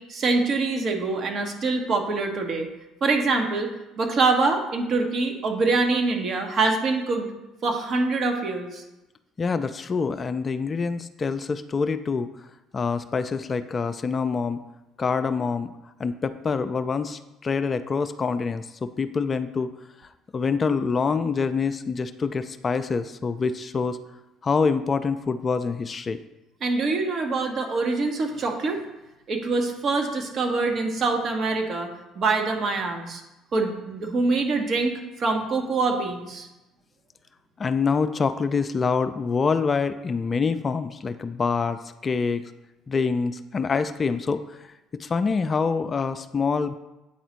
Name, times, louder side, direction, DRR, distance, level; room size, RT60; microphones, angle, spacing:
voice 1, 0.1-2.7 3.0-3.7 4.0-7.3 7.6-8.8 26.6-28.8 29.3-33.2 33.5-36.5, right 3 dB, 50° right, 3 dB, 1.0 m, -24 dB
voice 2, 9.4-12.3 12.7-14.6 15.0-15.7 16.0-19.7 20.3-24.0 24.4-26.2 37.6-42.4 42.9-44.7 45.0-46.7, left 5 dB, 35° left, 11 dB, 0.4 m, -26 dB
8.8 x 4.0 x 3.0 m, 0.98 s
hypercardioid pair, 55°, 0 cm